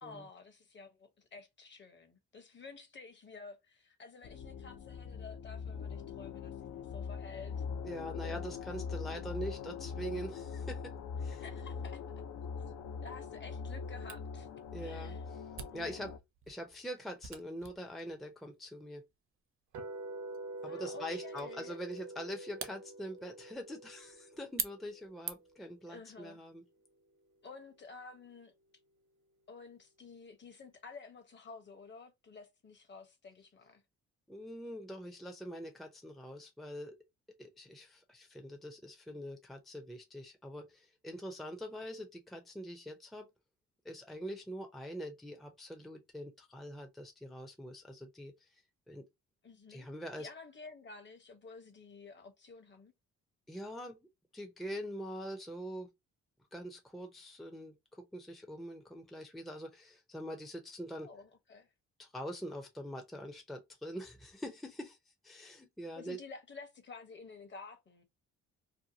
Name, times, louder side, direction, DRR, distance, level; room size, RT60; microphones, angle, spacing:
voice 1, 0.0-7.6 11.3-12.0 13.0-14.5 14.8-15.2 20.6-21.8 25.9-26.4 27.4-28.5 29.5-33.8 49.4-49.9 50.2-52.9 61.0-61.7 65.9-68.0, left 4 dB, 40° left, 0.9 m, -51 dB
sound 1, 4.2-16.2, left 6 dB, 65° left, 0.5 m, -42 dB
voice 2, 7.8-10.9 11.2-11.4 14.7-15.4 15.7-16.2 16.5-19.0 20.6-26.6 34.3-37.0 37.4-43.3 43.8-49.0 49.7-50.3 53.5-54.0 54.3-55.9 56.5-61.1 62.0-65.0 65.2-66.2, equal, ahead, 0.5 m, -44 dB
Camera, 14.1-25.7, right 7 dB, 45° right, 0.6 m, -47 dB
sound 2, 19.7-25.8, right 2 dB, 75° right, 0.9 m, -46 dB
2.7 x 2.2 x 2.6 m
cardioid pair, 90°, 30 cm